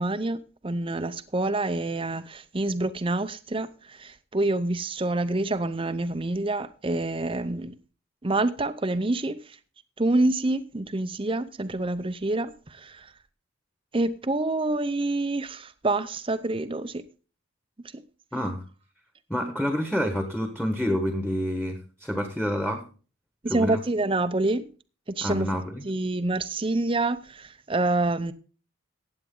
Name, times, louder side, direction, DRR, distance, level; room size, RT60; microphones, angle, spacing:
voice 1, 0.0-7.7 8.2-9.4 10.0-13.1 13.9-17.0 17.9-18.0 23.4-24.7 25.2-28.3, right 2 dB, 25° right, 0.6 m, -27 dB
voice 2, 18.3-18.6 19.3-22.9 23.5-23.8 25.2-25.9, equal, 5° left, 1.3 m, -28 dB
15.0 x 8.9 x 3.8 m
head